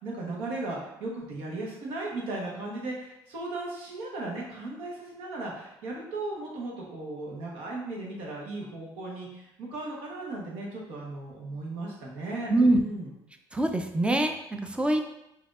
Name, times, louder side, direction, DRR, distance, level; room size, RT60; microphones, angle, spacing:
voice 1, 0.0-13.1, right 2 dB, 80° right, -2 dB, 1.2 m, -36 dB
voice 2, 12.5-12.8 13.5-15.0, right 1 dB, 10° right, 6 dB, 0.5 m, -24 dB
5.1 x 2.7 x 2.5 m, 0.86 s
supercardioid pair, 80°, 10 cm